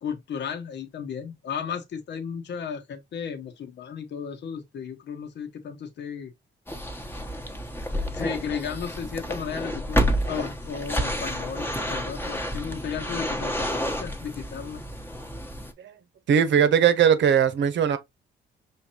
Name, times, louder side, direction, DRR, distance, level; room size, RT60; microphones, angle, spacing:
voice 1, 0.0-6.3 8.1-14.8, left 7 dB, 60° left, 1.1 m, -34 dB
sound 1, 6.7-15.7, equal, 10° left, 1.0 m, -30 dB
voice 2, 16.3-18.0, right 8 dB, 65° right, 1.0 m, -19 dB
5.6 x 2.9 x 2.9 m
cardioid pair, 90°, 20 cm